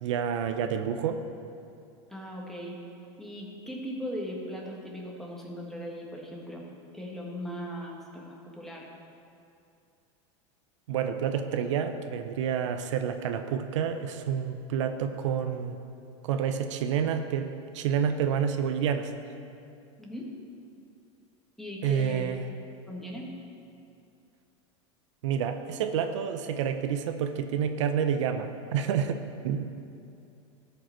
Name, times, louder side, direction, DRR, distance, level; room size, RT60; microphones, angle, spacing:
voice 1, 0.0-1.2 10.9-15.8 16.2-19.1 21.8-22.4 25.2-29.7, right 8 dB, 80° right, 8 dB, 0.6 m, -29 dB
voice 2, 2.1-2.8 3.2-6.7 6.9-8.9 20.0-20.3 21.6-22.5 22.9-23.3, equal, ahead, -3 dB, 1.7 m, -38 dB
14.0 x 5.2 x 4.5 m, 2.6 s
supercardioid pair, 120°, 15 cm